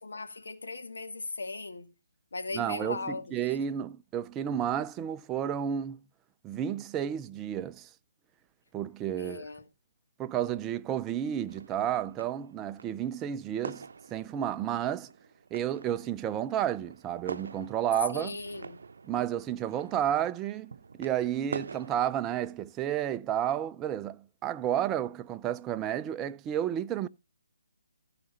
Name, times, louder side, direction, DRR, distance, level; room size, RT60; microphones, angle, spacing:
voice 1, 0.0-1.9 2.3-3.6 9.1-9.7 18.1-18.8, left 3 dB, 80° left, 2.4 m, -38 dB
voice 2, 2.5-6.0 6.4-7.9 8.7-9.4 10.2-15.1 15.5-18.3 19.1-27.1, right 10 dB, 15° right, 0.5 m, -31 dB
sound 1, 11.3-22.4, right 5 dB, 70° right, 0.7 m, -46 dB
14.5 x 4.9 x 5.5 m
hypercardioid pair, 155°, 0 cm